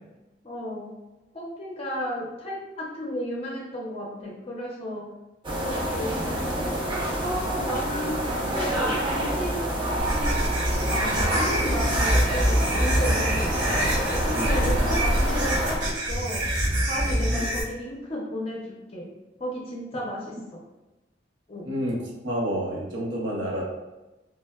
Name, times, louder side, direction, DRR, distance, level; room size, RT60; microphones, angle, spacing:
voice 1, 0.4-0.9 1.3-5.0 5.6-6.7 7.2-9.6 10.1-10.3 10.9-13.6 14.1-16.5 16.8-18.6 18.9-19.1 19.4-20.6 21.5-21.7, equal, 35° left, -3 dB, 0.5 m, -33 dB
sound 1, 5.4-15.8, right 1 dB, 25° right, 0.5 m, -27 dB
sound 2, 10.0-17.6, equal, 65° right, 1.2 m, -25 dB
voice 2, 14.3-14.7 17.3-17.4 21.6-23.6, equal, 85° right, -3 dB, 0.7 m, -29 dB
3.2 x 2.2 x 2.2 m, 1.0 s
head